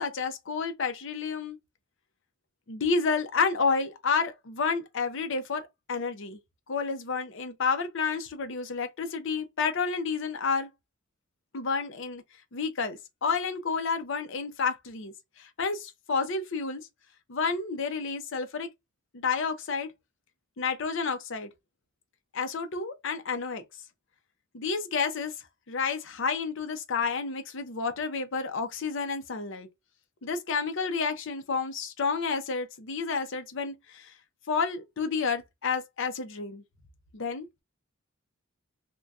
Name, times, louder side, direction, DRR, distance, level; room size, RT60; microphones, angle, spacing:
voice 1, 0.0-1.6 2.7-6.4 6.7-10.7 11.5-12.2 12.5-15.1 15.4-16.9 17.3-18.7 19.1-19.9 20.6-21.5 22.3-23.6 24.5-25.3 25.7-29.7 30.2-34.1 34.5-36.6 37.1-37.5, left 5 dB, 60° left, 0.6 m, -30 dB
2.7 x 2.2 x 3.4 m
head